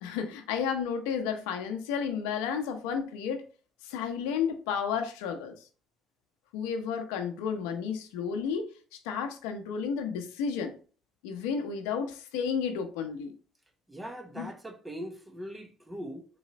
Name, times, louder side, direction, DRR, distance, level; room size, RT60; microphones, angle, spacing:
voice 1, 0.0-3.4 3.8-5.6 6.5-8.7 9.0-10.7 11.2-13.3 14.4-14.5, left 6 dB, 90° left, 0.8 m, -32 dB
voice 2, 13.9-16.3, equal, 15° right, 0.9 m, -41 dB
4.1 x 3.1 x 4.0 m
supercardioid pair, 80°, 0 cm